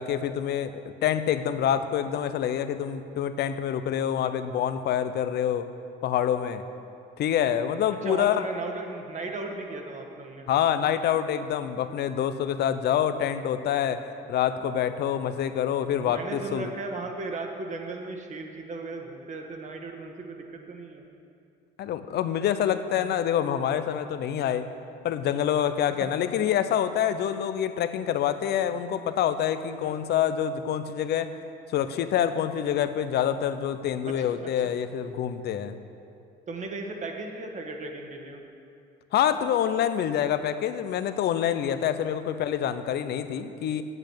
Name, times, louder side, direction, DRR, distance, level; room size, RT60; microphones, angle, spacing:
voice 1, 0.0-5.7 6.0-6.6 7.2-8.4 10.5-16.7 21.8-24.7 25.0-31.3 31.7-35.8 39.1-43.8, left 9 dB, 60° left, 11 dB, 0.7 m, -26 dB
voice 2, 8.0-10.5 15.9-21.1 26.0-26.1 29.8-30.0 34.1-34.7 36.5-38.4 42.0-42.1, right 3 dB, 40° right, 2 dB, 1.6 m, -36 dB
8.9 x 8.3 x 8.1 m, 2.5 s
cardioid pair, 105°, 19 cm